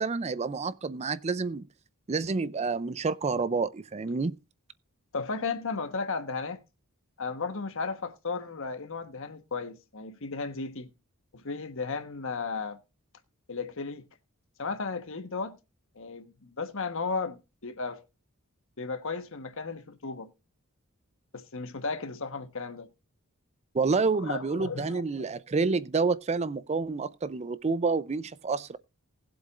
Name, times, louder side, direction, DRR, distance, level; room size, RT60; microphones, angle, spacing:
voice 1, 0.0-1.6 2.1-4.4 23.7-28.8, right 4 dB, 30° right, 0.5 m, -28 dB
voice 2, 5.1-6.6 7.2-10.9 11.3-12.8 13.5-14.0 14.6-15.6 15.9-18.0 18.8-20.3 21.3-22.9 24.1-25.3, left 4 dB, 65° left, 1.2 m, -35 dB
19.5 x 7.7 x 2.5 m
head